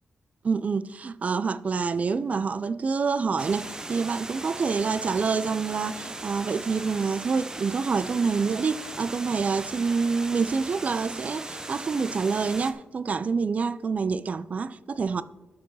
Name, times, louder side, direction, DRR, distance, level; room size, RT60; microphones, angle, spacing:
voice 1, 0.4-15.2, right 5 dB, 45° right, 0.4 m, -27 dB
Water, 3.4-12.7, right 2 dB, 20° right, 0.8 m, -38 dB
12.5 x 4.7 x 5.5 m
wide cardioid pair, 115°, 3 cm